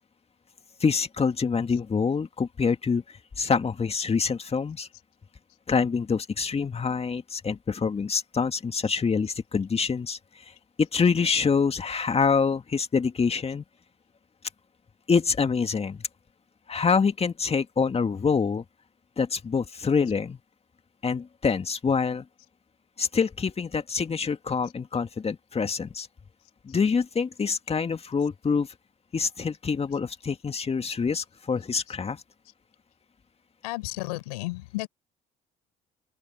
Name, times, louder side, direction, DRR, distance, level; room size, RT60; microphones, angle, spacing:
voice 1, 0.8-4.9 5.7-10.2 10.8-13.6 15.1-16.1 16.7-18.6 19.2-20.4 21.0-22.3 23.0-26.1 26.6-28.7 29.1-32.2, left 5 dB, 30° left, 2.1 m, -26 dB
voice 2, 33.6-34.9, left 22 dB, 90° left, 5.8 m, -33 dB
open air
hypercardioid pair, 65°, 19 cm